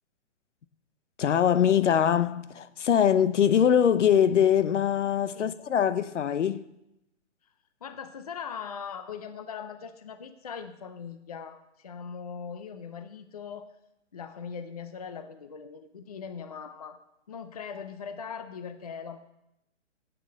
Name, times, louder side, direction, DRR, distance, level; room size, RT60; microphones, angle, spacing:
voice 1, 1.2-6.7, left 9 dB, 75° left, 0.8 m, -23 dB
voice 2, 7.8-13.7 14.1-17.0 17.3-19.2, left 6 dB, 35° left, 0.5 m, -40 dB
8.8 x 6.8 x 7.6 m
hypercardioid pair, 170°, 36 cm